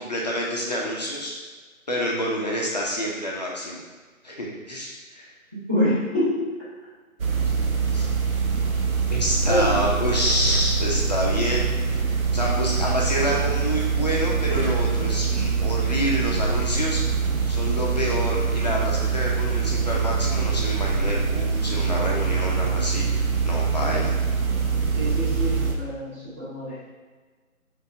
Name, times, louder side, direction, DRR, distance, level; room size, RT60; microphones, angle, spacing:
voice 1, 0.0-1.3 1.9-3.8 4.2-5.3 7.9-8.1 9.1-17.0 17.5-24.2, equal, 30° left, -3 dB, 0.6 m, -28 dB
voice 2, 5.5-6.5 9.4-9.9 23.7-24.1 24.9-26.8, left 1 dB, 10° right, -15 dB, 0.8 m, -26 dB
sound 1, 7.2-25.7, right 5 dB, 75° right, 0.8 m, -24 dB
4.4 x 3.3 x 3.4 m, 1.4 s
figure-of-eight pair, 155°, 43 cm